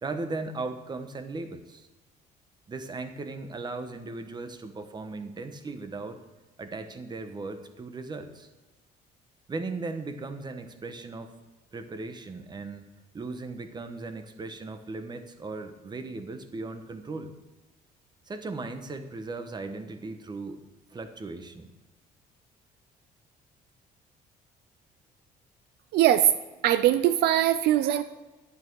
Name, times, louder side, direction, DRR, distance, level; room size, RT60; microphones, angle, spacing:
voice 1, 0.0-1.9 2.7-6.2 6.6-8.5 9.5-11.3 11.7-12.9 13.1-17.3 18.3-20.6 20.9-21.7, right 3 dB, 25° right, 9 dB, 1.2 m, -37 dB
voice 2, 25.9-26.3 26.6-28.0, right 12 dB, 75° right, 12 dB, 0.5 m, -21 dB
11.5 x 8.9 x 4.7 m, 1.2 s
cardioid pair, 110°, 17 cm